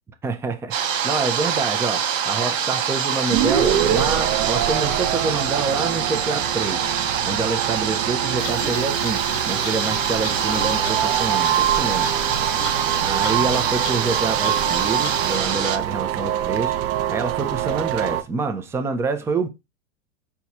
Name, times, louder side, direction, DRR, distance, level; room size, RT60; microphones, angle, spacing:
voice 1, 0.2-6.9 7.2-12.2 13.0-16.8 17.1-19.5, right 4 dB, 5° right, 0.4 m, -27 dB
sound 1, 0.7-15.8, right 8 dB, 85° right, 0.9 m, -25 dB
sound 2, 3.3-18.2, right 11 dB, 50° right, 0.6 m, -25 dB
sound 3, 8.4-15.4, left 8 dB, 75° left, 0.7 m, -37 dB
4.6 x 2.4 x 4.1 m
hypercardioid pair, 110°, 38 cm